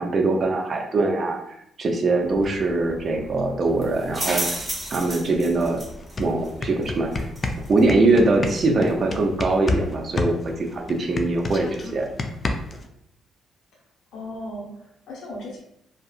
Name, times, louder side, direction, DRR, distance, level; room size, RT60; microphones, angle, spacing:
voice 1, 0.0-1.4 1.8-4.6 4.9-5.8 6.2-7.3 7.7-12.1, right 2 dB, 45° right, 3 dB, 0.5 m, -22 dB
sound 1, 2.2-12.8, right 1 dB, 20° right, 1.1 m, -37 dB
sound 2, 5.6-5.7 6.0-9.9 10.2-12.9, left 3 dB, 40° left, 0.3 m, -28 dB
voice 2, 14.1-15.6, left 1 dB, 80° left, -3 dB, 0.7 m, -36 dB
2.7 x 2.3 x 2.4 m, 0.75 s
cardioid pair, 90°, 0 cm